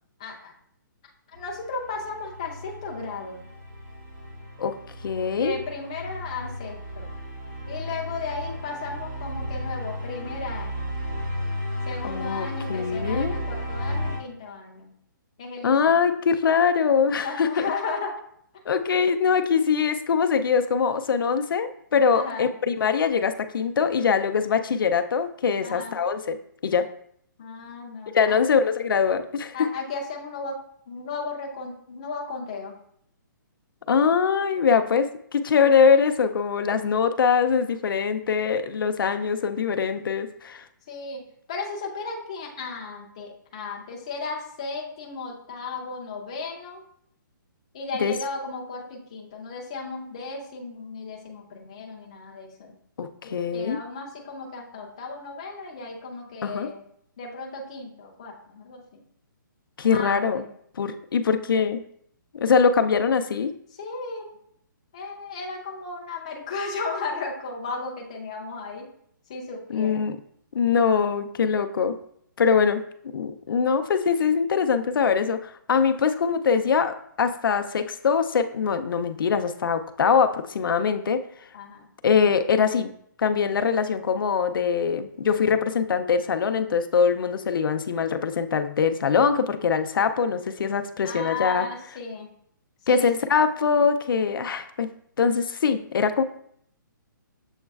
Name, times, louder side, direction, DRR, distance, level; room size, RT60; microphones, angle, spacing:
voice 1, 0.2-0.5 1.3-3.4 5.4-7.1 7.7-10.9 11.9-14.9 15.4-16.1 17.2-18.2 22.1-22.5 25.6-25.9 27.4-28.4 29.5-30.6 30.9-32.7 40.9-41.2 41.5-46.8 47.7-52.7 53.2-56.8 57.2-58.8 59.9-60.5 63.8-64.3 64.9-68.9 69.3-70.0 81.5-81.8 91.0-92.3 92.9-93.3, left 3 dB, 20° left, 0 dB, 0.4 m, -35 dB
sound 1, 1.3-14.2, equal, 55° right, 1.3 m, -34 dB
voice 2, 5.0-5.6 12.0-13.4 15.6-17.6 18.7-26.4 26.6-26.9 28.1-29.7 33.9-40.6 48.0-48.1 53.0-53.8 56.4-56.7 59.8-60.5 60.8-61.8 62.3-63.5 69.7-70.2 70.5-72.0 72.4-72.8 73.1-81.2 82.0-82.9 83.2-91.7 92.9-94.9 95.2-96.2, left 6 dB, 85° left, 9 dB, 0.4 m, -23 dB
7.1 x 3.1 x 2.3 m, 0.67 s
hypercardioid pair, 180°, 11 cm